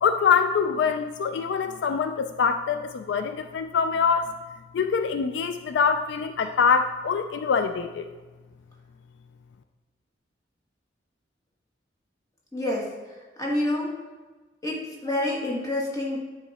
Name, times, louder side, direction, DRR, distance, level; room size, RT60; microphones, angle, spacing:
voice 1, 0.0-4.3 4.7-8.1, left 6 dB, 70° left, 8 dB, 0.3 m, -24 dB
voice 2, 12.5-13.9 14.6-16.2, left 1 dB, 20° left, -3 dB, 1.5 m, -28 dB
9.4 x 3.7 x 4.1 m, 1.3 s
head